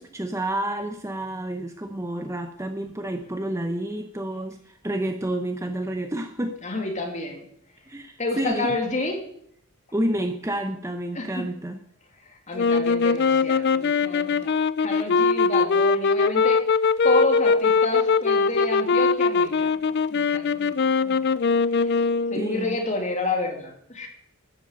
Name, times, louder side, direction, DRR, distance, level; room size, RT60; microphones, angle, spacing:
voice 1, 0.0-6.6 7.9-8.8 9.9-11.8 22.4-22.8, right 1 dB, 15° right, 6 dB, 0.7 m, -29 dB
voice 2, 6.6-7.5 8.2-9.1 11.1-11.4 12.5-16.6 17.0-21.2 21.8-22.0 22.3-24.1, left 2 dB, 30° left, 2 dB, 2.6 m, -30 dB
sound 1, 12.5-22.6, left 4 dB, 50° left, 0.4 m, -21 dB
12.5 x 8.0 x 7.7 m, 0.69 s
head